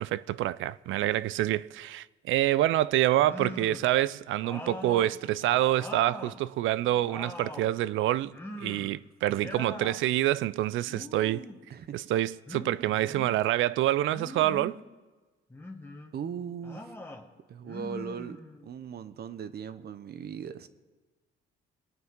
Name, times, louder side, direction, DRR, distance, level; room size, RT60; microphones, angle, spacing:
voice 1, 0.0-11.5 11.9-14.8, right 14 dB, 80° right, 0.4 m, -27 dB
sound 1, 3.1-3.9 4.4-6.4 6.8-7.7 8.3-9.0 9.3-10.0 10.8-11.6 12.5-13.4 14.1-14.8 15.5-16.1 16.6-17.2 17.6-18.7, left 1 dB, 10° left, 1.5 m, -42 dB
voice 2, 16.1-17.0 17.5-20.7, right 7 dB, 55° right, 0.8 m, -39 dB
22.5 x 9.1 x 3.7 m
cardioid pair, 90°, 20 cm